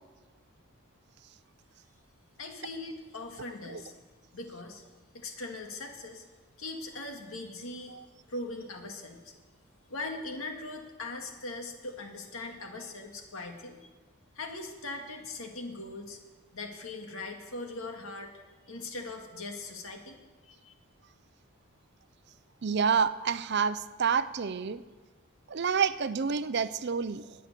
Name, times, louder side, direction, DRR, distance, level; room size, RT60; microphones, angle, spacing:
voice 1, 2.4-3.9 4.3-4.9 5.1-6.2 6.6-8.0 8.3-9.3 9.9-13.8 14.4-16.2 16.5-20.2 20.4-20.7, left 2 dB, 75° left, 3 dB, 1.9 m, -40 dB
voice 2, 22.6-24.8 25.5-27.3, right 6 dB, 50° right, 15 dB, 0.5 m, -28 dB
20.5 x 7.7 x 6.7 m, 1.4 s
head